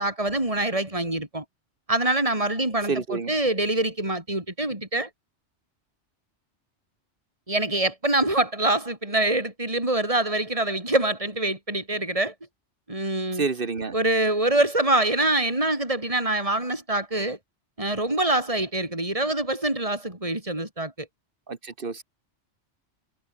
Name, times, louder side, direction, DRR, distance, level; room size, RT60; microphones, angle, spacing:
voice 1, 0.0-1.4 1.9-5.1 7.5-12.3 12.9-13.5 13.9-17.4 17.8-21.1, right 2 dB, 30° right, 5.1 m, -25 dB
voice 2, 2.9-3.3 13.3-13.9 21.5-22.0, right 4 dB, 50° right, 1.7 m, -29 dB
omnidirectional pair, 1.2 m